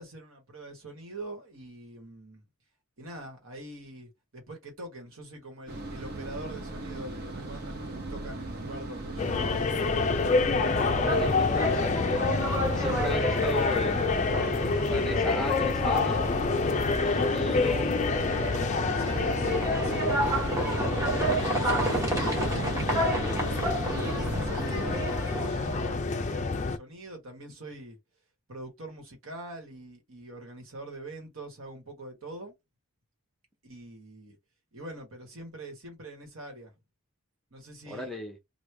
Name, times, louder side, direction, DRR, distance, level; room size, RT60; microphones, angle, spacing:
voice 1, 0.0-2.4 3.0-9.8 18.2-18.6 19.0-23.5 23.9-28.0 28.5-32.5 33.6-34.4 34.7-36.7 37.5-38.1, right 1 dB, 65° right, 1.4 m, -44 dB
sound 1, 5.7-25.1, right 2 dB, 45° right, 0.9 m, -38 dB
sound 2, 9.2-26.8, left 4 dB, 35° left, 0.4 m, -28 dB
voice 2, 10.9-12.2 12.7-14.4 14.7-16.3 16.9-18.0 37.9-38.4, left 1 dB, ahead, 0.7 m, -36 dB
sound 3, 10.9-26.0, right 1 dB, 15° right, 1.0 m, -32 dB
3.2 x 2.4 x 3.3 m
head